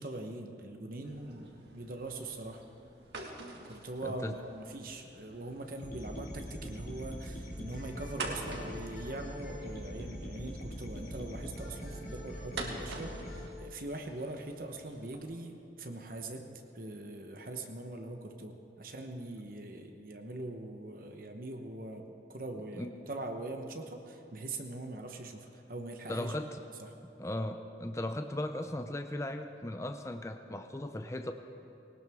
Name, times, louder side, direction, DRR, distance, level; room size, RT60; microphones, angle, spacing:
voice 1, 0.0-2.6 3.6-16.4 16.7-22.0 22.3-26.4 26.8-26.9, right 2 dB, 50° right, 4 dB, 1.0 m, -42 dB
sound 1, 1.0-15.2, right 2 dB, 75° right, 1.8 m, -47 dB
sound 2, 5.8-13.5, equal, 45° left, 2.3 m, -43 dB
voice 2, 26.1-26.6 27.2-31.3, left 1 dB, 15° left, 7 dB, 0.5 m, -37 dB
20.0 x 18.5 x 3.6 m, 2.7 s
head